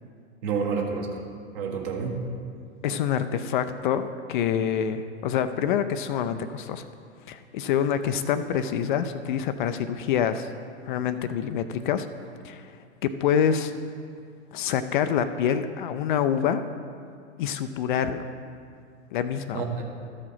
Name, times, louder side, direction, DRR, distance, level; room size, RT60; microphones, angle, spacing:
voice 1, 0.4-1.2 1.5-2.2 19.5-19.8, right 5 dB, 50° right, 1 dB, 1.6 m, -29 dB
voice 2, 2.8-6.9 7.3-10.5 10.9-12.1 12.4-13.7 14.5-16.6 17.4-18.3 19.1-19.7, left 8 dB, 45° left, 10 dB, 0.4 m, -26 dB
13.0 x 5.0 x 5.6 m, 2.3 s
figure-of-eight pair, 100°, 35 cm